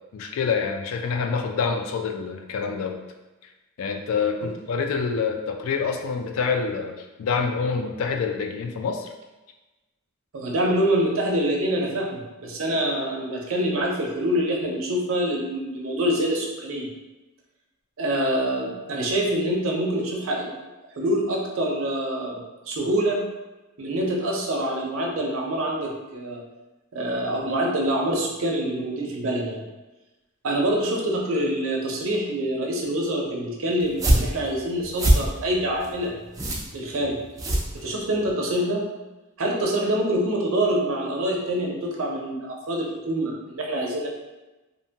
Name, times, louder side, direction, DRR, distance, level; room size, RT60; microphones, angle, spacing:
voice 1, 0.1-3.0 3.8-9.1, left 5 dB, 70° left, 4 dB, 0.3 m, -26 dB
voice 2, 10.3-16.9 18.0-20.5 21.0-23.2 23.8-26.4 26.9-29.6 30.4-36.1 36.7-37.2 37.7-38.8 39.4-44.1, right 1 dB, 65° right, -1 dB, 0.5 m, -25 dB
sound 1, 33.8-38.3, right 1 dB, 15° right, 0.3 m, -24 dB
2.7 x 2.1 x 2.7 m, 1.1 s
head